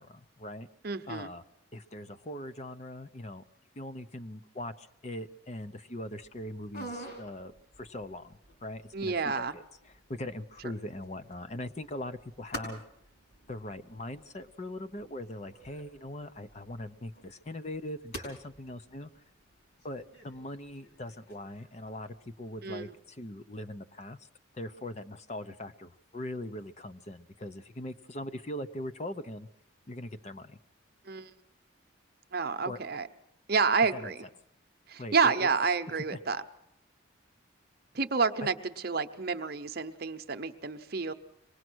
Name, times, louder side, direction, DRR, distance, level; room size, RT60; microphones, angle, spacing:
voice 1, 0.0-0.7 1.1-1.4 1.7-3.4 3.8-12.8 13.5-19.1 19.8-24.2 24.5-29.5 29.9-30.6 32.7-32.8 33.9-34.1 35.0-35.5 36.1-36.2, left 1 dB, 35° left, 11 dB, 0.7 m, -41 dB
voice 2, 0.8-1.3 8.9-9.5 22.6-22.9 31.1-31.3 32.3-33.1 33.5-34.2 34.9-36.4 37.9-41.1, right 5 dB, 50° right, 8 dB, 0.9 m, -29 dB
sound 1, 6.2-22.9, equal, 50° left, 5.0 m, -50 dB
24.5 x 19.5 x 6.3 m, 0.81 s
head